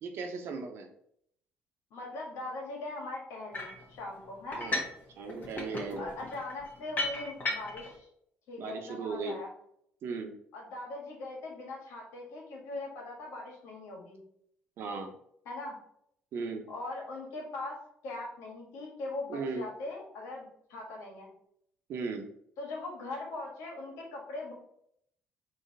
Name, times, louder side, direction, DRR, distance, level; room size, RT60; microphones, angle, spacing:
voice 1, 0.0-0.9 4.6-4.8 5.2-6.1 8.6-9.4 10.0-10.3 14.8-15.1 16.3-16.6 19.3-19.7 21.9-22.3, right 4 dB, 65° right, 4 dB, 0.9 m, -36 dB
voice 2, 1.9-4.7 6.0-8.1 8.5-9.5 10.5-14.2 15.4-15.8 16.7-21.3 22.6-24.5, left 2 dB, 80° left, -1 dB, 1.5 m, -40 dB
sound 1, 3.5-3.8 4.5-5.0 5.3-7.9, left 2 dB, 40° left, 1.4 m, -35 dB
4.1 x 2.9 x 4.0 m, 0.70 s
supercardioid pair, 75°, 4 cm